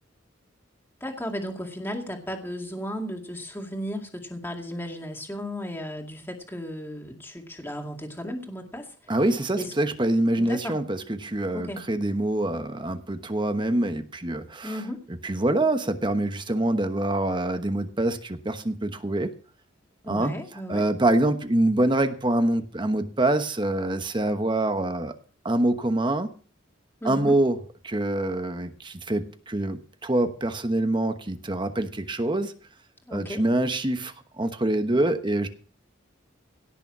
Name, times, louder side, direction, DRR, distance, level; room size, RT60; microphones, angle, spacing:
voice 1, 1.0-9.0 9.6-9.7 10.4-10.8 11.5-11.8 14.6-15.0 20.0-20.8 27.0-27.4 33.1-33.4, equal, 10° left, 2 dB, 2.2 m, -35 dB
voice 2, 9.1-14.8 15.2-19.3 20.1-25.1 25.4-26.3 27.0-32.5 33.1-35.5, right 1 dB, 25° right, 8 dB, 1.1 m, -25 dB
17.0 x 6.8 x 6.1 m, 0.41 s
head